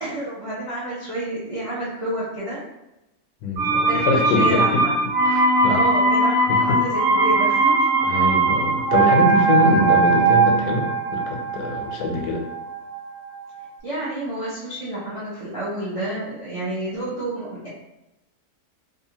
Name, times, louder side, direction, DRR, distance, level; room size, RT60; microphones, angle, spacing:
voice 1, 0.0-2.6 3.7-5.0 5.7-7.9 13.8-17.7, right 1 dB, 50° right, -8 dB, 0.4 m, -29 dB
voice 2, 3.4-4.8 5.2-5.8 6.5-6.8 8.0-12.4, left 3 dB, 85° left, 1 dB, 1.1 m, -24 dB
sound 1, 3.6-13.3 13.6-13.7, right 3 dB, 75° right, 1.0 m, -20 dB
2.6 x 2.4 x 2.7 m, 0.91 s
omnidirectional pair, 1.5 m